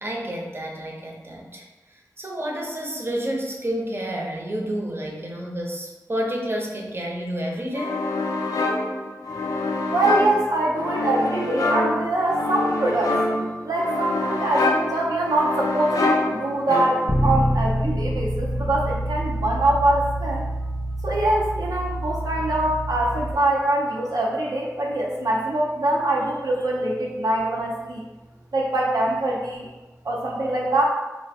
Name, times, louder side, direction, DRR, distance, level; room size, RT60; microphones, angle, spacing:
voice 1, 0.0-1.7 2.2-8.0, equal, 35° right, -1 dB, 0.8 m, -29 dB
sound 1, 7.8-17.3, left 2 dB, 65° left, 0.5 m, -26 dB
voice 2, 9.9-13.2 13.6-20.4 21.0-28.0 28.5-29.7 30.0-30.8, right 2 dB, 70° right, -3 dB, 0.5 m, -23 dB
Bass guitar, 17.1-23.3, right 1 dB, 15° left, 0.5 m, -26 dB
3.0 x 2.1 x 4.1 m, 1.1 s
cardioid pair, 40°, 7 cm